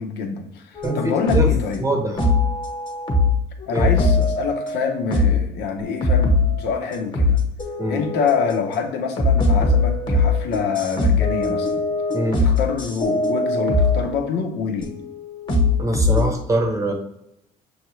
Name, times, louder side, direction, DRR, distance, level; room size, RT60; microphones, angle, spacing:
voice 1, 0.0-1.9 3.6-7.4 7.9-11.9 12.4-15.0, left 6 dB, 80° left, 4 dB, 0.8 m, -26 dB
sound 1, 0.8-1.6 2.2-3.4 3.8-5.5 5.8-6.8 7.1-8.7 9.2-14.1 14.8-16.3, left 3 dB, 30° left, 1.2 m, -20 dB
voice 2, 0.8-1.5 1.8-2.2 3.7-3.9 7.8-8.1 12.1-12.4 15.8-16.9, right 1 dB, 20° right, 3 dB, 0.8 m, -23 dB
6.2 x 2.4 x 3.1 m, 0.80 s
cardioid pair, 110°, 17 cm